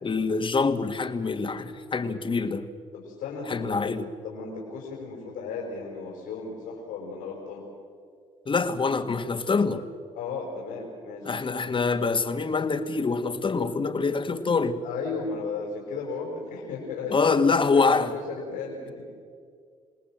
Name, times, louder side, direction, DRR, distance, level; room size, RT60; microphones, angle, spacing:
voice 1, 0.0-2.7 3.5-4.1 8.5-9.9 11.2-14.8 17.1-18.1, left 4 dB, 35° left, 1.9 m, -25 dB
voice 2, 2.9-7.7 10.1-11.4 14.8-19.2, left 4 dB, 90° left, 5.2 m, -35 dB
28.0 x 18.5 x 7.6 m
supercardioid pair, 60°, 14 cm